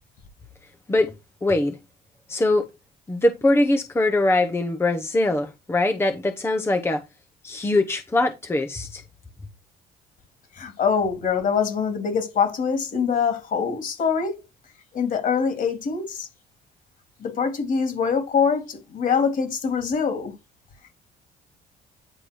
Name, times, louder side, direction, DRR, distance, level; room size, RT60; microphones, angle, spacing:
voice 1, 1.4-1.8 2.3-2.7 3.1-7.0 7.4-9.0, left 2 dB, 15° left, 0.9 m, -22 dB
voice 2, 10.6-14.4 14.9-16.3 17.2-20.3, left 6 dB, 55° left, 3.0 m, -24 dB
9.8 x 3.9 x 4.6 m
cardioid pair, 110°, 17 cm